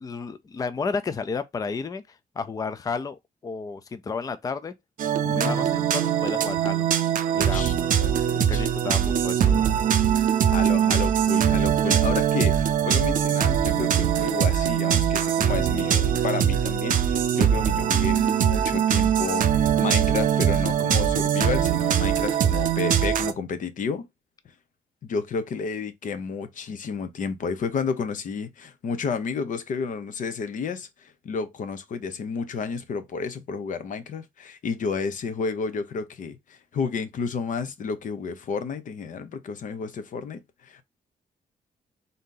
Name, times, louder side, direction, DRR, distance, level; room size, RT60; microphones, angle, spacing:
voice 1, 0.0-2.0 2.4-4.7 5.2-6.9 7.3-7.9 8.5-9.7, left 4 dB, 25° left, 0.4 m, -32 dB
sound 1, 5.0-23.3, right 9 dB, 60° right, 0.6 m, -22 dB
voice 2, 5.2-5.6 7.3-8.7 10.5-24.1 25.0-40.8, left 5 dB, 60° left, 0.8 m, -31 dB
3.9 x 2.7 x 3.8 m
cardioid pair, 130°, 15 cm